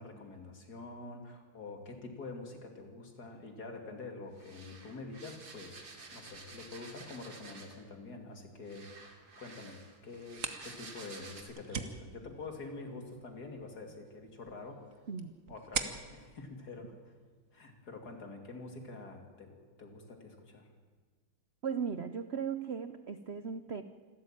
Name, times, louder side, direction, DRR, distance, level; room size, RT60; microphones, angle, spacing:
voice 1, 0.0-5.8 6.1-15.0 15.5-16.9 17.5-20.7, left 3 dB, 50° left, 4 dB, 3.1 m, -46 dB
sound 1, 4.4-7.9 8.7-11.4, right 3 dB, 65° right, 3.3 m, -51 dB
sound 2, 10.1-17.6, right 6 dB, 45° right, 1.5 m, -44 dB
voice 2, 21.6-23.8, right 6 dB, 90° right, 11 dB, 0.5 m, -37 dB
27.0 x 13.0 x 9.0 m, 1.4 s
omnidirectional pair, 2.2 m